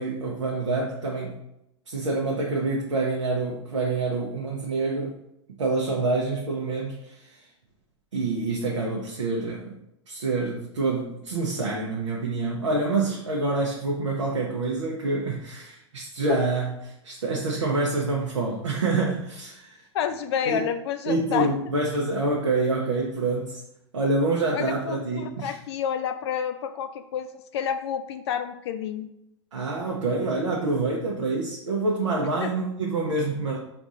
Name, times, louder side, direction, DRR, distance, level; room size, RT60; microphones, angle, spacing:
voice 1, 0.0-1.4 1.9-5.2 5.6-7.4 8.1-9.7 10.1-19.8 20.5-20.6 21.1-23.6 23.9-25.5 29.5-33.6, right 3 dB, 85° right, -2 dB, 0.7 m, -27 dB
voice 2, 19.9-21.5 24.5-29.1 32.4-32.5, left 8 dB, 65° left, 8 dB, 0.4 m, -29 dB
3.5 x 2.6 x 4.0 m, 0.82 s
hypercardioid pair, 100°, 15 cm